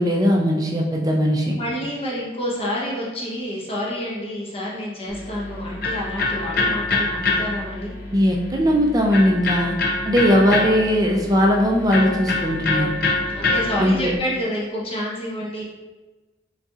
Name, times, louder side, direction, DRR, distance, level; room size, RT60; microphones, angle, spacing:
voice 1, 0.0-1.5 8.1-9.7 10.0-12.9 13.8-14.1, equal, 20° right, 0 dB, 0.5 m, -19 dB
voice 2, 1.5-7.9 13.3-15.6, equal, 30° left, -4 dB, 0.9 m, -28 dB
Electric guitar, 5.1-14.2, left 3 dB, 50° left, 0.6 m, -26 dB
4.0 x 4.0 x 2.4 m, 1.2 s
head